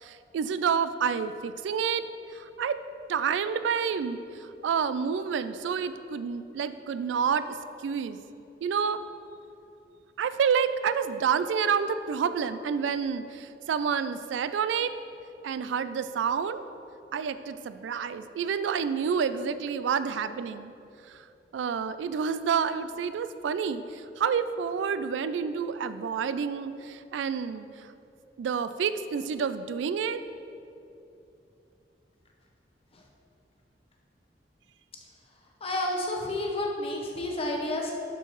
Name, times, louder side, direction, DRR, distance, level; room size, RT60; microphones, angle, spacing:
voice 1, 0.0-2.1 2.3-2.8 3.1-7.6 7.8-8.2 8.6-9.0 10.2-14.9 15.4-16.6 17.1-20.7 21.1-21.2 21.5-27.9 28.4-30.2, right 6 dB, 90° right, 12 dB, 0.3 m, -29 dB
voice 2, 35.6-37.9, left 1 dB, 35° left, 0 dB, 0.9 m, -30 dB
11.5 x 4.5 x 3.1 m, 2.7 s
head